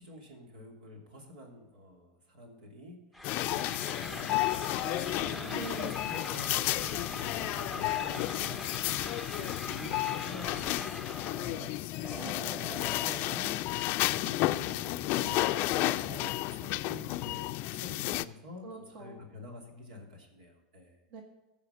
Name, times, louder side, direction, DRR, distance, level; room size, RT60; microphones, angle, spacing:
voice 1, 0.0-5.5 5.9-11.7 12.0-21.0, left 1 dB, 85° right, 2 dB, 2.8 m, -48 dB
sound 1, 3.1-11.6, left 1 dB, ahead, 0.7 m, -43 dB
sound 2, 3.2-18.2, left 17 dB, 50° left, 0.4 m, -32 dB
sound 3, 4.4-9.0 9.9-14.1 14.4-14.5 15.1-16.7, right 2 dB, 25° right, 2.2 m, -49 dB
voice 2, 5.4-6.0 12.2-12.6 18.6-19.2 21.1-21.2, right 4 dB, 55° right, 2 dB, 1.7 m, -43 dB
14.5 x 5.1 x 6.8 m, 1.1 s
hypercardioid pair, 105°, 4 cm